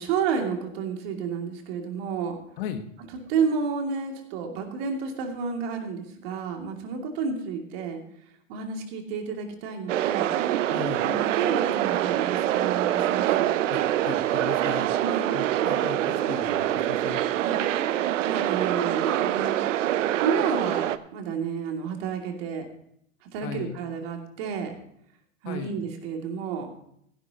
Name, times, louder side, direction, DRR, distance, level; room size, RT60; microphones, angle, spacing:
voice 1, 0.0-2.4 3.3-8.0 8.5-10.3 10.7-13.5 15.0-15.2 17.4-17.6 18.2-19.6 20.2-22.7 23.3-24.7 25.4-26.7, right 6 dB, 45° right, 3 dB, 2.6 m, -30 dB
voice 2, 2.6-2.9 10.7-11.0 13.7-14.9 15.3-17.2 23.4-23.8 25.4-25.8, left 9 dB, 45° left, 8 dB, 1.3 m, -37 dB
sound 1, 9.9-21.0, right 12 dB, 65° right, 0.7 m, -25 dB
16.0 x 11.0 x 2.9 m, 0.69 s
hypercardioid pair, 120°, 41 cm